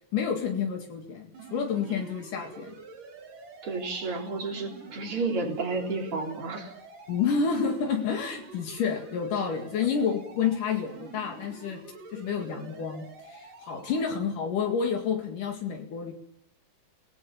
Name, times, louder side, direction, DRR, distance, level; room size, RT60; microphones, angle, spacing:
voice 1, 0.1-2.8 7.1-11.8 12.1-16.1, left 6 dB, 70° left, 4 dB, 3.6 m, -29 dB
sound 1, 1.3-14.0, right 4 dB, 70° right, 4.6 m, -47 dB
voice 2, 3.6-6.7, right 3 dB, 40° right, 2 dB, 4.4 m, -31 dB
29.5 x 19.0 x 7.1 m, 0.73 s
omnidirectional pair, 3.9 m